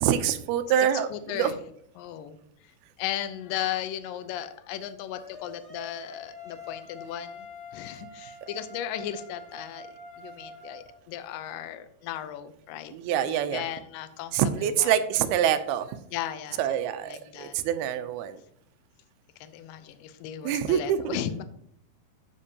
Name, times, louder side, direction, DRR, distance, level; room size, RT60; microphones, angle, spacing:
voice 1, 0.0-1.5 12.9-13.6 14.3-16.0 16.6-18.4 20.4-21.2, right 10 dB, 80° right, 10 dB, 2.5 m, -26 dB
voice 2, 0.8-1.6 2.0-2.7 3.0-9.9 10.2-12.9 13.3-14.9 16.1-16.6 17.1-17.6 19.4-21.4, left 11 dB, 80° left, 10 dB, 2.0 m, -36 dB
sound 1, 5.1-10.9, left 2 dB, 40° left, 0.9 m, -45 dB
13.5 x 5.3 x 2.8 m, 0.69 s
omnidirectional pair, 4.6 m